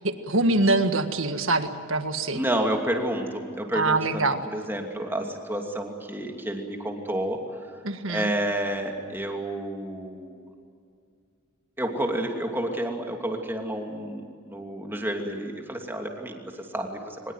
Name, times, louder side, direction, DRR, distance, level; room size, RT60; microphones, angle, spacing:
voice 1, 0.0-2.4 3.7-4.4 7.8-8.3, right 2 dB, 65° right, 8 dB, 1.8 m, -24 dB
voice 2, 2.3-4.2 4.5-7.7 8.1-10.4 11.8-17.3, right 1 dB, 10° right, 2 dB, 2.8 m, -30 dB
24.0 x 21.0 x 9.3 m, 2.2 s
head